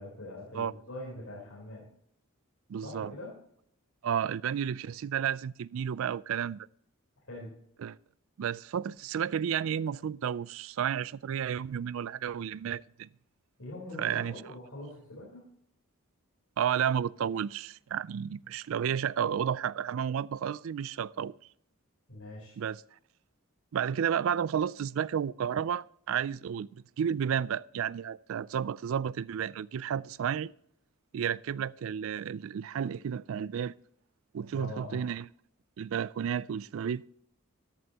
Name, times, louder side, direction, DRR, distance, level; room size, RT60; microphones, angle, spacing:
voice 1, 0.0-1.9 2.8-3.3 7.3-7.5 13.6-15.5 22.1-22.6 34.5-35.1, left 1 dB, 80° left, 3.8 m, -43 dB
voice 2, 2.7-3.1 4.0-6.7 7.8-8.0 8.4-13.1 14.0-14.3 16.6-21.3 22.6-22.8 23.7-30.5 31.1-33.7 34.3-35.3 35.8-37.0, right 8 dB, 65° right, 0.3 m, -32 dB
13.5 x 11.0 x 2.9 m
head